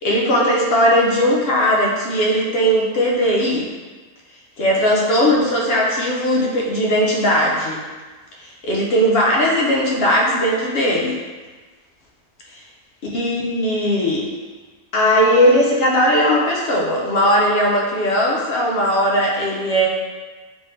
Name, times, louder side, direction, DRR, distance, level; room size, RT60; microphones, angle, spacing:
voice 1, 0.0-3.7 4.6-7.8 8.4-11.2 13.1-14.3 14.9-19.9, equal, 65° left, -3 dB, 0.6 m, -18 dB
3.1 x 2.7 x 3.1 m, 1.3 s
omnidirectional pair, 1.5 m